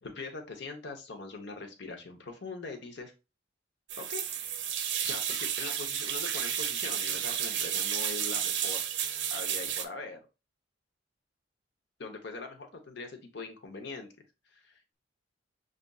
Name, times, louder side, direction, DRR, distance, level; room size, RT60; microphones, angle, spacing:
voice 1, 0.0-3.1 4.0-4.5 5.0-8.8 9.3-10.2 12.0-14.1 14.5-15.0, left 3 dB, 60° left, 5 dB, 0.9 m, -42 dB
sound 1, 3.9-9.8, right 9 dB, 65° right, 0.5 m, -32 dB
6.5 x 2.5 x 2.3 m, 0.28 s
head